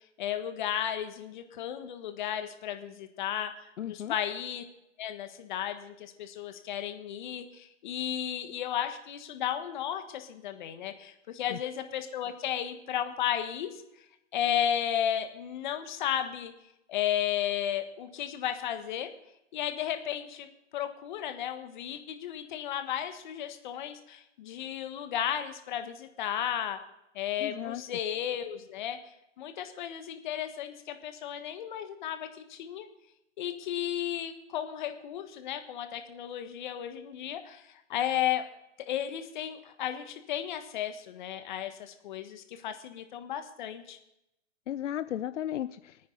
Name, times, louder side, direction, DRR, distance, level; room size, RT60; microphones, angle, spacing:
voice 1, 0.2-3.5 3.8-4.6 5.0-13.7 14.3-16.5 16.9-19.1 19.5-20.5 20.7-26.8 27.1-29.0 29.4-32.9 33.4-38.5 38.9-44.0, left 10 dB, 40° left, 8 dB, 1.4 m, -34 dB
voice 2, 3.8-4.1 11.5-11.6 27.4-27.8 44.7-46.1, left 11 dB, 80° left, 13 dB, 0.6 m, -35 dB
26.0 x 9.4 x 4.0 m, 0.85 s
hypercardioid pair, 160°, 36 cm